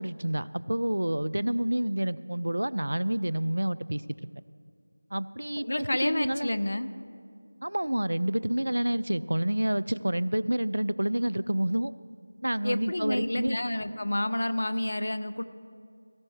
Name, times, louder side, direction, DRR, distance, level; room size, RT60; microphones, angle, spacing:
voice 1, 0.0-4.0 5.1-6.5 7.6-11.9 12.4-13.6, right 1 dB, 65° right, 18 dB, 0.4 m, -28 dB
voice 2, 5.6-6.9 12.6-15.4, left 1 dB, 55° left, 12 dB, 0.6 m, -29 dB
18.0 x 15.5 x 3.3 m, 2.2 s
figure-of-eight pair, 170°, 0 cm